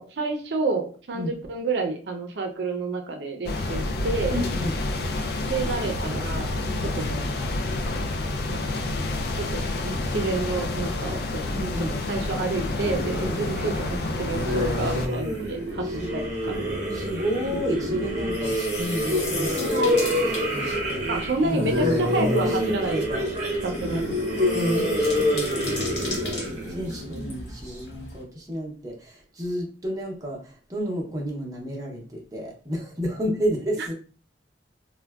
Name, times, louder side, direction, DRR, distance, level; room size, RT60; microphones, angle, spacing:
voice 1, 0.0-4.4 5.4-6.5 6.9-7.3 8.5-8.8 9.3-11.5 11.9-16.5 21.1-23.3 23.6-24.2 33.8-33.9, right 3 dB, 75° right, 3 dB, 0.5 m, -29 dB
sound 1, 3.5-15.1, left 2 dB, 60° left, 0.4 m, -29 dB
voice 2, 4.3-4.8 6.7-6.9 11.5-12.0 13.2-13.4 16.9-21.1 21.4-23.2 23.9-24.0 24.5-33.9, equal, 20° right, -1 dB, 0.7 m, -31 dB
sound 2, 12.8-27.7, left 1 dB, 45° right, 0.9 m, -27 dB
sound 3, 14.7-28.2, left 2 dB, 75° left, 0.9 m, -39 dB
3.5 x 2.1 x 2.3 m, 0.40 s
head